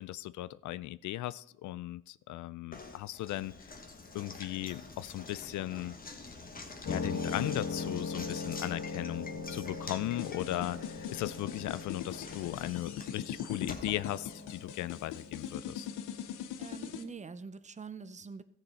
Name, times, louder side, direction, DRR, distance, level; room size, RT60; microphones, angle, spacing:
voice 1, 0.0-3.5 4.1-5.9 6.9-15.9, left 15 dB, 75° left, 18 dB, 0.4 m, -37 dB
Knock, 2.7-14.9, left 3 dB, 30° left, 1.4 m, -47 dB
sound 1, 6.9-17.1, left 4 dB, 60° left, 1.4 m, -41 dB
sound 2, 10.2-17.0, left 9 dB, 90° left, 0.8 m, -41 dB
voice 2, 16.6-18.4, right 5 dB, 25° right, 14 dB, 0.6 m, -45 dB
15.0 x 6.7 x 4.2 m, 0.69 s
cardioid pair, 90°, 30 cm